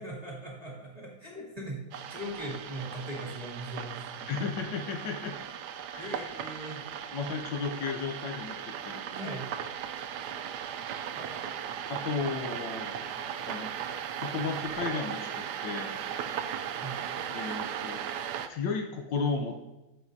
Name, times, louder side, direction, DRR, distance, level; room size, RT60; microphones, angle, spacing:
voice 1, 0.0-4.4 6.0-6.8 9.1-9.5 9.9-10.0 11.1-11.6 16.8-17.0, right 1 dB, 20° right, -4 dB, 2.4 m, -40 dB
sound 1, 1.9-18.5, right 8 dB, 70° right, 1.0 m, -37 dB
voice 2, 4.3-5.4 5.9-6.2 7.1-9.4 11.9-13.0 13.5-13.7 14.2-16.0 17.3-18.0 18.5-19.6, left 5 dB, 70° left, 3 dB, 1.3 m, -34 dB
14.0 x 5.6 x 2.6 m, 1.0 s
omnidirectional pair, 2.2 m